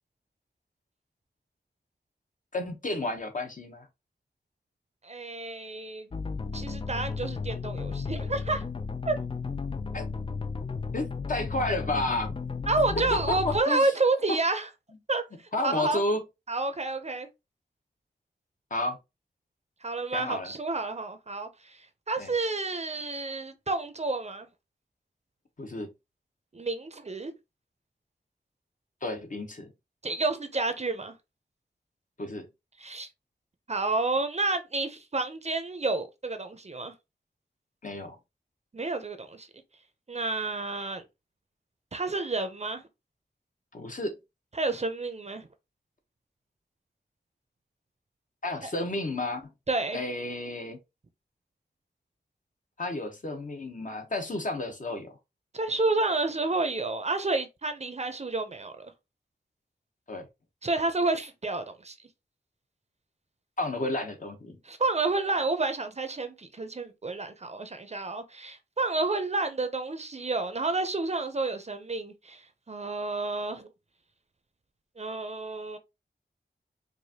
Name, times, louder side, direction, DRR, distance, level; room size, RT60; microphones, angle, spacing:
voice 1, 2.5-3.9 9.9-10.0 10.9-12.4 13.1-13.9 14.3-14.4 15.5-16.2 18.7-19.0 20.1-20.5 22.2-22.3 25.6-25.9 29.0-29.7 32.2-32.5 37.8-38.2 43.7-44.2 48.4-49.5 49.9-50.8 52.8-55.1 60.1-60.3 63.6-64.6, left 2 dB, 45° left, 1.0 m, -31 dB
voice 2, 5.0-6.1 6.5-8.6 9.1-9.2 12.7-14.7 15.1-15.2 15.6-16.0 16.5-17.3 19.8-21.5 22.1-24.5 26.5-27.3 30.0-31.1 32.8-33.1 33.7-36.9 38.7-39.5 40.1-41.0 41.9-42.8 44.5-45.5 48.6-48.7 49.7-50.0 55.5-58.9 60.6-61.9 64.6-72.4 72.7-73.7 75.0-75.8, right 3 dB, 40° right, 0.6 m, -30 dB
sound 1, 6.1-13.6, left 4 dB, 30° left, 0.4 m, -34 dB
4.8 x 2.5 x 2.8 m
wide cardioid pair, 100°, 18 cm